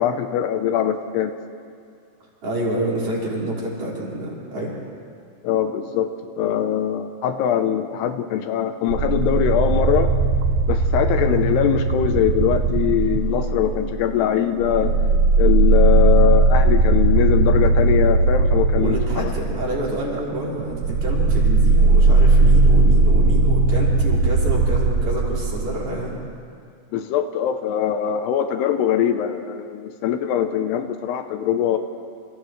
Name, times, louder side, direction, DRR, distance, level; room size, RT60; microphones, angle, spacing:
voice 1, 0.0-1.3 5.4-10.1 10.7-14.9 15.4-19.3 26.9-31.8, left 9 dB, 80° left, 7 dB, 2.8 m, -22 dB
voice 2, 2.4-4.7 14.8-15.0 18.8-20.8 21.0-26.2, right 1 dB, 45° right, -6 dB, 6.1 m, -27 dB
sound 1, 8.9-14.1 14.5-26.1, right 3 dB, 75° right, 2.6 m, -18 dB
29.5 x 29.5 x 3.2 m, 2.3 s
omnidirectional pair, 5.0 m